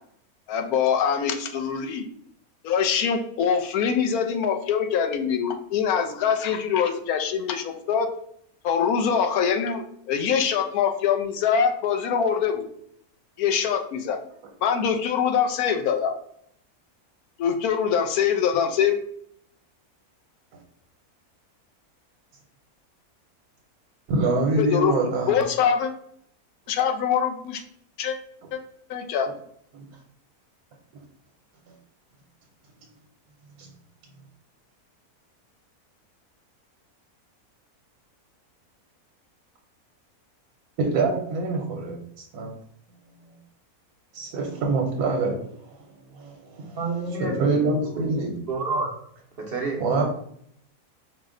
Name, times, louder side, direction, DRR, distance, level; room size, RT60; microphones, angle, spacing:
voice 1, 0.5-2.1 2.6-8.1 8.6-12.7 13.4-14.2 14.6-16.1 17.4-19.0 24.6-25.9 26.7-27.6 28.0-28.2 28.5-28.6 28.9-29.3, left 7 dB, 75° left, 5 dB, 1.1 m, -24 dB
voice 2, 24.1-25.4 29.7-29.8 33.6-33.7 40.8-42.5 44.1-45.9 46.1-46.7 47.2-48.3 49.8-50.0, right 3 dB, 75° right, 1 dB, 1.1 m, -25 dB
voice 3, 46.8-48.1 48.5-48.9 49.4-50.0, right 3 dB, 55° right, 0 dB, 0.6 m, -29 dB
4.9 x 2.1 x 3.6 m, 0.68 s
omnidirectional pair, 1.6 m